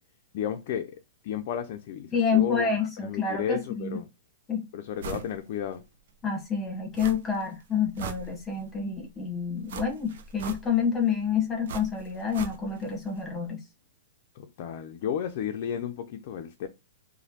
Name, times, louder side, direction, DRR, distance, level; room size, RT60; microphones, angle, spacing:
voice 1, 0.3-0.9 1.2-4.1 4.7-5.8 14.4-16.7, left 9 dB, 55° left, 0.4 m, -33 dB
voice 2, 2.1-4.0 4.5-4.7 6.2-13.6, left 6 dB, 20° left, 1.1 m, -28 dB
sound 1, 5.0-5.3 5.7-5.8 7.0-7.5 7.8-8.7 9.7-11.0 11.7-12.9 13.2-13.3, right 6 dB, 65° right, 0.6 m, -39 dB
3.0 x 2.1 x 2.8 m
hypercardioid pair, 130°, 0 cm